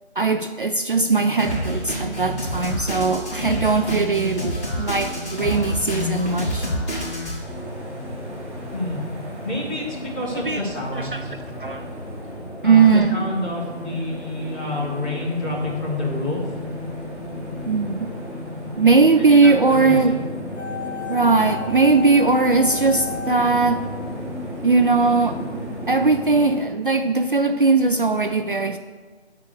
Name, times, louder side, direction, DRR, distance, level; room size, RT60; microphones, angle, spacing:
voice 1, 0.2-6.7 10.4-10.6 11.0-11.9 12.6-13.2 17.7-18.1 18.8-20.2 21.1-23.8 24.6-25.4 25.9-28.8, right 4 dB, 50° right, 8 dB, 0.5 m, -19 dB
Drum kit, 1.4-7.4, equal, 25° left, 2.9 m, -27 dB
sound 1, 7.4-26.6, left 1 dB, 10° right, 2.0 m, -33 dB
voice 2, 9.4-11.3 12.6-16.5 19.3-20.3, left 2 dB, 10° left, -7 dB, 1.1 m, -28 dB
sound 2, 20.6-24.7 24.9-25.0, left 6 dB, 90° left, 1.2 m, -33 dB
9.6 x 4.8 x 6.6 m, 1.4 s
figure-of-eight pair, 155°, 34 cm